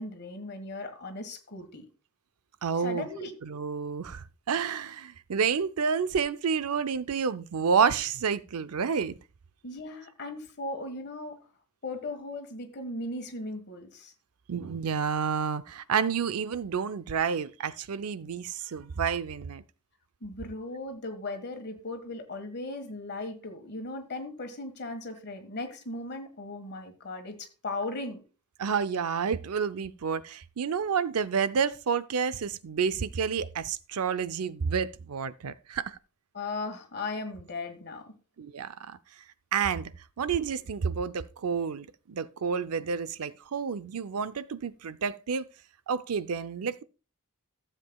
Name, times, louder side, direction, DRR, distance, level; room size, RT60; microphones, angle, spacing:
voice 1, 0.0-1.9 2.7-3.3 9.6-11.4 11.8-14.1 20.2-28.2 36.3-38.1, left 2 dB, 50° left, 1.6 m, -37 dB
voice 2, 2.6-3.1 3.4-9.1 14.5-19.6 28.6-36.0 38.4-39.0 39.5-39.9 40.2-45.4 45.9-46.8, right 6 dB, 75° right, 0.5 m, -29 dB
15.0 x 7.5 x 2.3 m
head